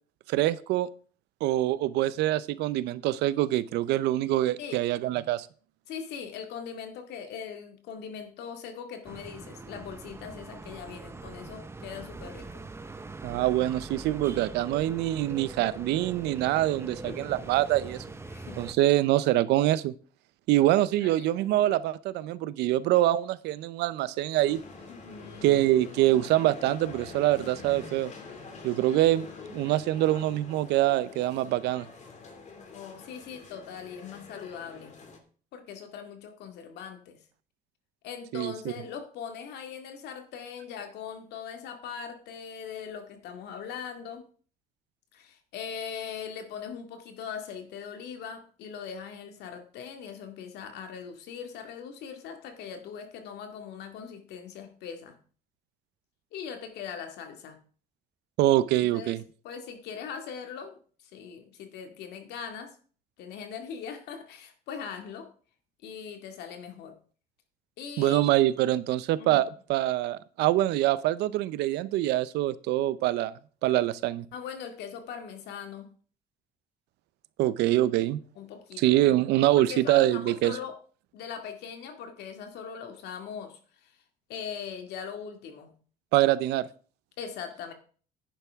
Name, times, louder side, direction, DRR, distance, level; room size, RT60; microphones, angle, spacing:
voice 1, 0.3-0.9 1.4-5.5 13.2-18.0 18.6-19.9 20.5-24.6 25.4-28.1 28.6-31.9 38.3-38.5 58.4-59.2 68.0-73.3 73.6-74.3 77.4-78.2 78.8-80.6 86.1-86.7, right 15 dB, 85° right, 0.7 m, -25 dB
voice 2, 5.9-12.6 16.9-17.3 18.3-18.7 21.0-21.3 24.9-25.6 32.7-34.9 35.5-37.2 38.0-44.3 45.1-55.2 56.3-57.6 58.6-59.2 59.4-62.8 63.2-65.3 65.8-67.0 67.8-68.2 69.2-69.4 74.3-75.9 78.4-79.0 79.6-80.8 81.1-84.0 84.3-85.7 87.2-87.7, left 7 dB, 80° left, 2.1 m, -40 dB
sound 1, 9.0-18.7, right 3 dB, 15° right, 0.8 m, -42 dB
sound 2, 24.3-35.2, left 4 dB, 45° left, 2.6 m, -46 dB
10.5 x 10.0 x 3.6 m
cardioid pair, 110°, 17 cm